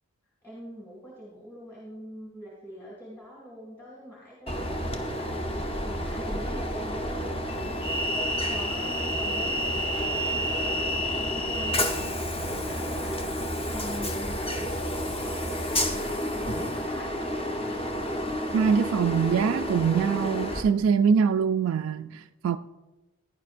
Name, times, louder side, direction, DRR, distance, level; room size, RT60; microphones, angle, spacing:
voice 1, 0.4-14.7 15.1-17.5, equal, 10° left, 2.1 m, -43 dB
Train, 4.5-20.6, equal, 25° left, 0.9 m, -30 dB
voice 2, 18.5-22.6, right 6 dB, 85° right, 0.3 m, -23 dB
16.0 x 10.5 x 2.5 m
head